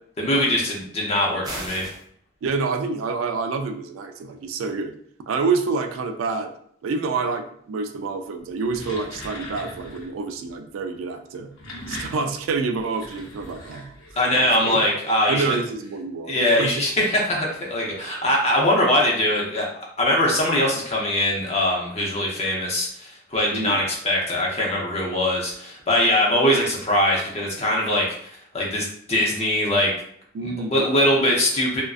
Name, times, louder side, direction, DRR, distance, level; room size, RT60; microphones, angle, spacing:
voice 1, 0.2-1.9 14.2-15.6 16.3-19.7 20.0-29.9 30.4-31.8, left 1 dB, 35° left, -2 dB, 0.6 m, -22 dB
sound 1, 1.4-2.0, right 1 dB, 20° right, 0.4 m, -34 dB
voice 2, 2.4-4.9 5.3-6.5 6.8-11.5 11.9-13.9 14.3-14.9 15.3-16.9 23.5-23.8 30.3-31.0, right 4 dB, 90° right, 7 dB, 0.3 m, -27 dB
sound 2, 8.5-10.2 11.3-14.4, left 1 dB, 90° left, 0.6 m, -39 dB
2.4 x 2.1 x 2.3 m, 0.65 s
head